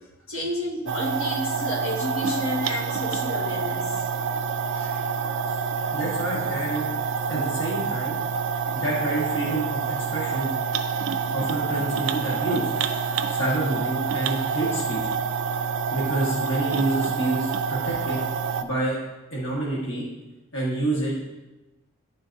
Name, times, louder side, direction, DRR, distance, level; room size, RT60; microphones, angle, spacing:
voice 1, 0.3-4.0 4.7-5.1, left 1 dB, 90° left, -5 dB, 1.6 m, -31 dB
sound 1, 0.9-18.6, right 6 dB, 60° right, 0.3 m, -27 dB
voice 2, 5.9-6.8 7.3-8.2 8.7-10.5 11.3-12.7 13.3-15.0 15.9-18.2 18.6-19.0 19.3-20.0 20.5-21.2, right 2 dB, 60° left, -5 dB, 1.3 m, -28 dB
10.5 x 3.8 x 2.6 m, 1.0 s
head